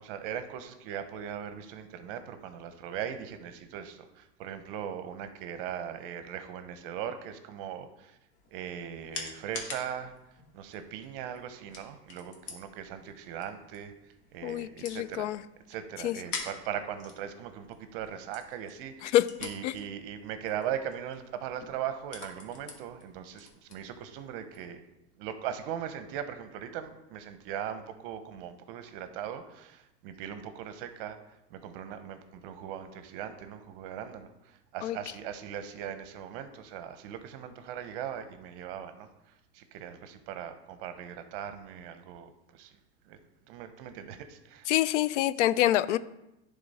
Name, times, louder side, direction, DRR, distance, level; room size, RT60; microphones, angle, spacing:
voice 1, 0.0-8.2 8.5-10.1 10.5-13.9 14.3-15.3 15.7-19.2 19.4-24.8 25.2-39.1 39.5-42.8 43.1-43.2 43.5-44.7, right 9 dB, 50° right, 9 dB, 0.8 m, -39 dB
sound 1, 8.3-24.7, left 4 dB, 45° left, 1.5 m, -47 dB
voice 2, 14.4-15.4 16.0-16.2 19.0-19.3 19.6-19.7 34.8-35.0 44.7-46.0, left 14 dB, 85° left, 16 dB, 0.5 m, -26 dB
11.0 x 3.7 x 4.1 m, 0.91 s
supercardioid pair, 160°, 35 cm